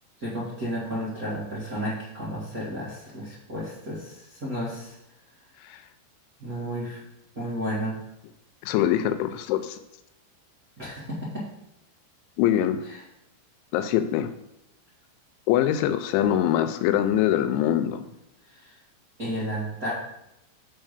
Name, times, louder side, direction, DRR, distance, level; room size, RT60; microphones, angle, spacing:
voice 1, 0.2-5.0 6.4-7.0 7.3-8.0 10.8-11.4 12.8-13.0 18.5-18.8 19.2-19.9, equal, 65° right, -10 dB, 0.8 m, -32 dB
voice 2, 8.6-9.8 12.4-12.8 13.7-14.3 15.5-18.0, left 11 dB, 90° left, 10 dB, 3.0 m, -23 dB
6.0 x 4.6 x 6.5 m, 0.85 s
omnidirectional pair, 5.2 m